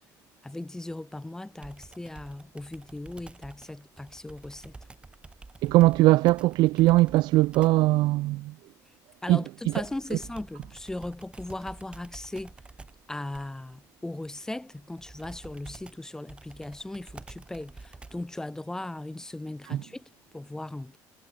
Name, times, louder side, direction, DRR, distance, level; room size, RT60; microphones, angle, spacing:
voice 1, 0.4-4.7 9.2-12.5 13.1-21.0, left 2 dB, 5° left, 2.4 m, -38 dB
Computer keyboard, 1.6-7.9 9.7-18.4, right 3 dB, 15° right, 4.3 m, -49 dB
voice 2, 5.6-8.5 9.3-9.4, right 18 dB, 70° right, 1.1 m, -20 dB
cardioid pair, 145°, 8 cm